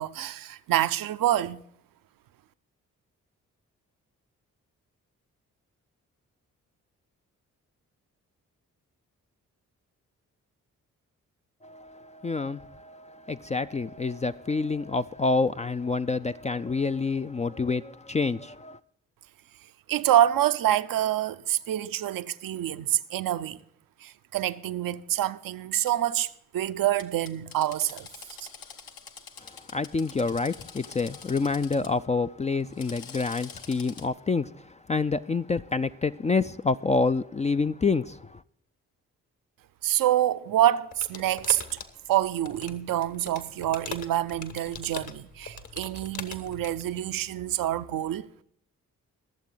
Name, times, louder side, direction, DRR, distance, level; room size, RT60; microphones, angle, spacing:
voice 1, 0.0-1.6 19.9-23.6 24.0-28.1 28.4-28.5 39.8-41.8 42.1-48.3, right 12 dB, 65° right, 0.6 m, -26 dB
voice 2, 11.6-18.8 29.4-38.4, left 4 dB, 20° left, 0.4 m, -28 dB
Drill, 25.8-25.9 27.0-31.9 32.6-34.1, left 6 dB, 70° left, 1.1 m, -46 dB
sound 1, 40.9-46.8, left 5 dB, 50° left, 1.4 m, -41 dB
22.0 x 7.3 x 3.9 m
hypercardioid pair, 40°, 37 cm